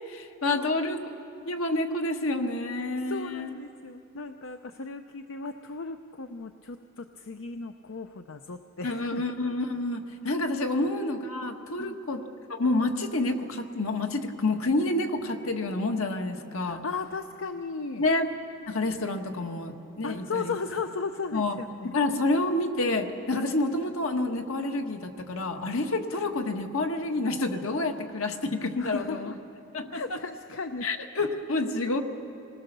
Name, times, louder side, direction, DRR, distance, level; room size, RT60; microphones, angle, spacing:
voice 1, 0.1-1.0 1.4-3.6 8.8-12.2 12.5-16.8 18.0-18.3 18.7-20.5 21.3-21.6 21.9-29.3 29.7-30.2 30.8-32.0, left 2 dB, 90° left, 5 dB, 1.5 m, -28 dB
voice 2, 3.0-9.2 10.7-10.9 11.8-12.0 16.7-18.1 20.0-22.0 28.8-29.4 29.9-30.9, left 4 dB, 70° left, 8 dB, 0.6 m, -36 dB
27.5 x 19.0 x 6.8 m, 2.7 s
head